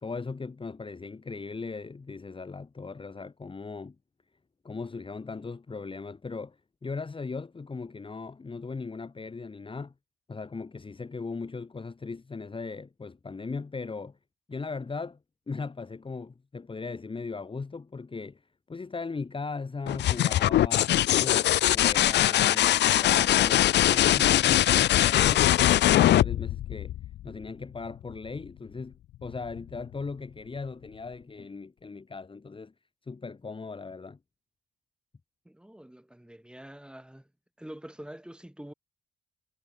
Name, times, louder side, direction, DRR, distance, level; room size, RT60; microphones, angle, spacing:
voice 1, 0.0-4.0 4.6-9.9 10.3-14.2 14.5-15.2 15.5-18.4 18.7-26.9 27.2-32.7 33.1-34.2, left 4 dB, 25° left, 2.0 m, -38 dB
sound 1, 19.9-27.4 29.2-29.8, left 13 dB, 60° left, 0.5 m, -22 dB
voice 2, 35.5-37.3 37.6-38.7, right 1 dB, 5° right, 5.7 m, -45 dB
cardioid pair, 90°, 20 cm